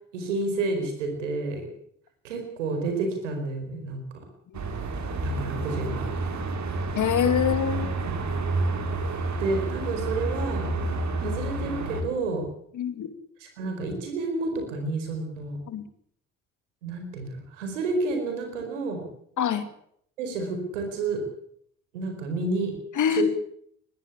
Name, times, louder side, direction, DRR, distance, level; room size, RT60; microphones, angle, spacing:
voice 1, 0.1-1.6 2.2-4.0 5.2-6.1 8.0-8.3 9.4-10.7 11.2-12.5 13.6-15.6 16.8-19.0 20.2-21.2 21.9-22.7 23.1-23.2, right 3 dB, 85° right, 5 dB, 4.7 m, -30 dB
sound 1, 4.5-12.0, right 2 dB, 50° right, 5.1 m, -29 dB
voice 2, 7.0-8.0 11.2-11.4 12.7-13.1 15.7-15.8 19.4-19.7 22.9-23.2, left 9 dB, 55° left, 10 dB, 2.8 m, -25 dB
21.5 x 16.0 x 8.2 m, 0.66 s
hypercardioid pair, 45°, 36 cm